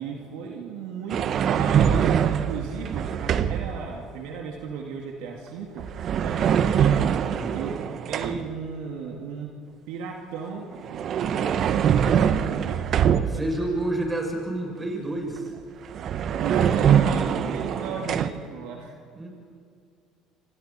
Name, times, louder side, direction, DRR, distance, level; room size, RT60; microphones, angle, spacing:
voice 1, 0.0-5.8 6.2-7.0 7.5-9.5 9.9-11.8 12.1-12.4 12.7-12.8 13.1-13.4 16.4-18.9, right 5 dB, 80° right, 0 dB, 2.5 m, -35 dB
sound 1, 1.1-3.8 5.8-8.6 10.7-13.6 15.6-15.7 15.9-18.3, right 8 dB, 55° right, 1.1 m, -23 dB
voice 2, 7.3-7.6 13.2-15.5 19.1-19.3, right 1 dB, 20° right, 0 dB, 7.3 m, -29 dB
29.0 x 26.0 x 4.5 m, 2.3 s
supercardioid pair, 80°, 0 cm